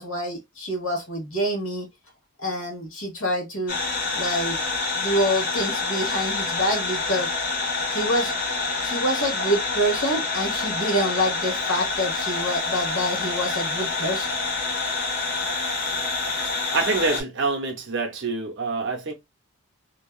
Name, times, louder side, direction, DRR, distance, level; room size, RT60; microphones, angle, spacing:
voice 1, 0.0-1.9 2.4-3.8 4.1-4.6 5.0-7.3 7.9-8.3 8.8-14.3, equal, 60° left, 1.1 m, -26 dB
sound 1, 3.7-17.2, left 3 dB, 40° left, 0.8 m, -27 dB
voice 2, 16.4-19.1, right 3 dB, 55° right, 0.7 m, -26 dB
2.6 x 2.3 x 2.3 m
head